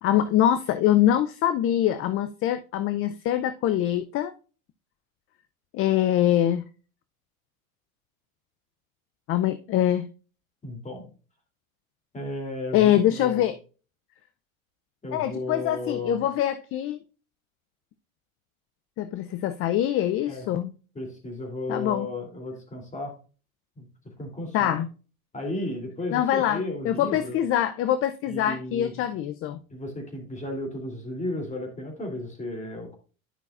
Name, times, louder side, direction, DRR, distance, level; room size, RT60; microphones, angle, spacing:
voice 1, 0.0-4.3 5.7-6.6 9.3-10.1 12.7-13.5 15.1-17.0 19.0-20.7 21.7-22.1 24.5-24.9 26.1-29.6, left 11 dB, 30° left, 0.5 m, -24 dB
voice 2, 10.6-11.0 12.1-13.4 15.0-16.3 20.3-20.5 20.9-23.2 23.8-24.8 25.3-27.4 28.3-28.9 29.7-33.0, left 2 dB, 15° left, 3.0 m, -34 dB
11.0 x 5.7 x 2.4 m
hypercardioid pair, 90°, 43 cm